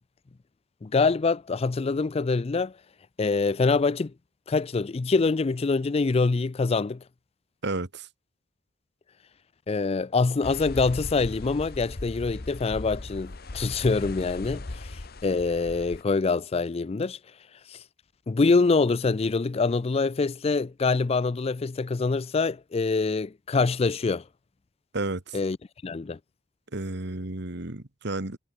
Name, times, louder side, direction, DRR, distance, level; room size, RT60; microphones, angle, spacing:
voice 1, 0.8-2.7 3.2-4.1 4.5-7.0 9.7-17.2 17.7-17.8 18.3-24.2 25.3-25.6 25.8-26.2, left 4 dB, 30° left, 0.4 m, -25 dB
voice 2, 7.6-8.1 24.9-25.4 26.7-28.4, right 2 dB, 60° right, 1.7 m, -32 dB
sound 1, 10.4-16.0, left 2 dB, 55° left, 1.1 m, -38 dB
head